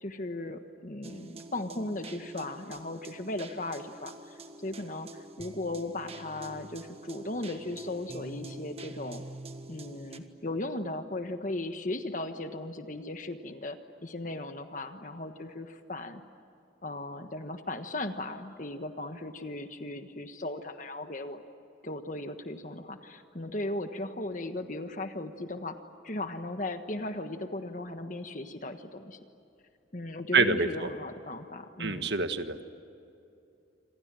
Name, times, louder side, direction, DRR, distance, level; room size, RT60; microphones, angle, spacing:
voice 1, 0.0-9.2 9.7-16.2 16.8-21.4 21.8-25.8 26.0-29.2 29.9-32.1, left 2 dB, 45° left, 7 dB, 1.4 m, -37 dB
sound 1, 1.0-10.2, right 2 dB, 30° right, 1.5 m, -46 dB
voice 2, 30.3-30.9 31.8-32.6, right 4 dB, 65° right, 8 dB, 1.6 m, -26 dB
28.0 x 27.0 x 7.7 m, 2.8 s
head